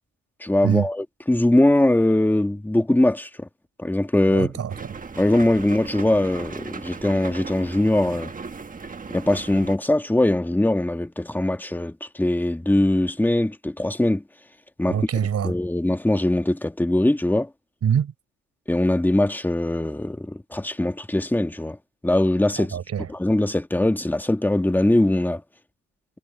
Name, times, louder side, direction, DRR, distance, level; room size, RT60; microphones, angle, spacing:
voice 1, 0.4-3.5 3.8-4.5 5.2-8.4 9.1-14.2 14.8-15.0 15.4-17.5 18.7-21.8 22.0-22.8 23.1-25.4, left 1 dB, 5° left, 1.6 m, -21 dB
voice 2, 4.3-4.7 14.9-15.5 17.8-18.1 22.6-23.1, right 8 dB, 55° right, 4.8 m, -24 dB
sound 1, 4.7-9.8, right 4 dB, 25° right, 1.4 m, -37 dB
cardioid pair, 90°, 30 cm